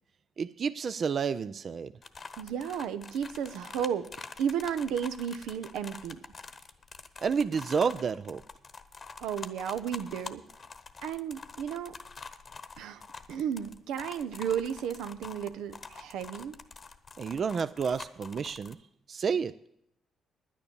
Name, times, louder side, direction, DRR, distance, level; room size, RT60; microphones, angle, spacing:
voice 1, 0.4-1.9 7.2-8.4 17.2-18.8 19.1-19.5, right 6 dB, 50° right, 14 dB, 0.4 m, -30 dB
sound 1, 2.0-18.7, left 4 dB, 40° left, 1.0 m, -46 dB
voice 2, 2.4-4.1 4.4-6.2 9.2-10.4 11.0-11.9 12.8-13.0 13.3-16.6, right 8 dB, 90° right, 11 dB, 0.7 m, -33 dB
10.0 x 9.6 x 6.9 m, 0.76 s
cardioid pair, 90°, 0 cm